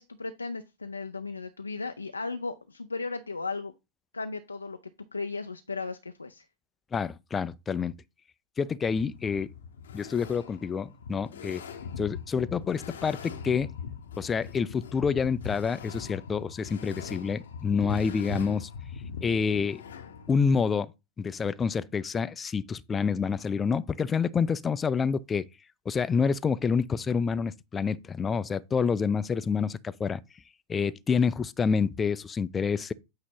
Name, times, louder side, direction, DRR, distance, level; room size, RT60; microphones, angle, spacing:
voice 1, 0.0-3.7 4.1-4.8 5.1-6.5, left 4 dB, 80° left, 0.4 m, -36 dB
voice 2, 6.9-7.9 8.6-9.5 9.9-11.6 12.0-13.7 14.2-18.7 19.2-19.8 20.3-20.9 21.2-25.5 25.9-30.2 30.7-32.9, left 6 dB, 20° left, 0.4 m, -28 dB
sound 1, 8.9-20.5, left 6 dB, 65° left, 0.8 m, -41 dB
8.6 x 2.9 x 5.3 m
figure-of-eight pair, 90°, 0 cm